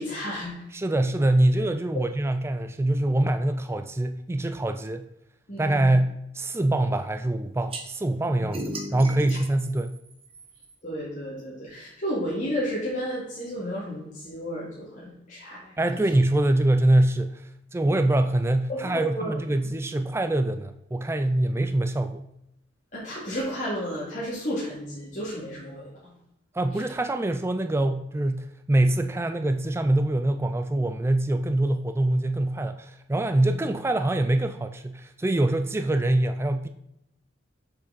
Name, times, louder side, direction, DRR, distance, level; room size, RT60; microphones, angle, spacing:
voice 1, 0.0-0.6 5.5-6.0 8.4-8.5 9.2-9.4 10.8-15.7 18.7-19.3 22.9-25.8, equal, 45° left, -8 dB, 2.3 m, -32 dB
voice 2, 0.7-5.1 5.6-10.0 15.8-22.2 26.5-36.7, right 1 dB, 15° right, 9 dB, 0.3 m, -24 dB
sound 1, 7.7-7.8 8.5-10.7, right 1 dB, 30° right, 1.2 m, -36 dB
7.3 x 6.5 x 4.1 m, 0.81 s
head